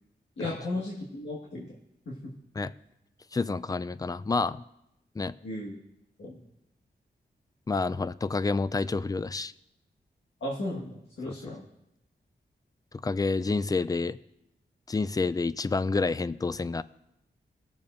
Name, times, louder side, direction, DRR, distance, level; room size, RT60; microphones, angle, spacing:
voice 1, 0.4-1.7 2.0-2.1 5.4-5.8 6.2-6.4 10.4-11.7, left 1 dB, 80° left, -5 dB, 1.6 m, -35 dB
voice 2, 3.3-4.6 5.2-5.3 7.7-9.5 11.3-11.4 13.0-14.2 14.9-16.8, left 3 dB, 20° left, 16 dB, 0.3 m, -28 dB
19.0 x 7.0 x 2.6 m, 0.85 s
wide cardioid pair, 75°, 19 cm